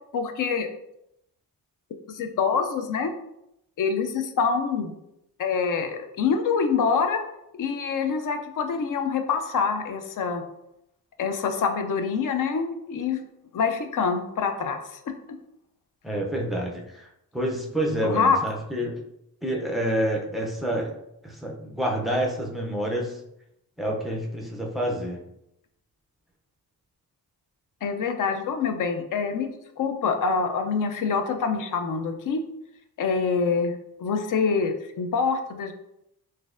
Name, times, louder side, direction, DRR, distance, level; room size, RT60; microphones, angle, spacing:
voice 1, 0.1-0.7 2.1-3.1 3.8-4.9 5.4-7.2 7.6-10.4 11.2-13.2 13.5-14.8 15.3-15.4 18.0-18.4 27.8-32.4 33.0-35.7, left 5 dB, 55° left, 7 dB, 0.4 m, -25 dB
voice 2, 16.0-17.1 17.3-19.0 19.4-20.9 21.2-23.2 23.8-25.2, right 1 dB, ahead, -1 dB, 0.4 m, -28 dB
3.9 x 2.6 x 2.5 m, 0.80 s
wide cardioid pair, 165°, 38 cm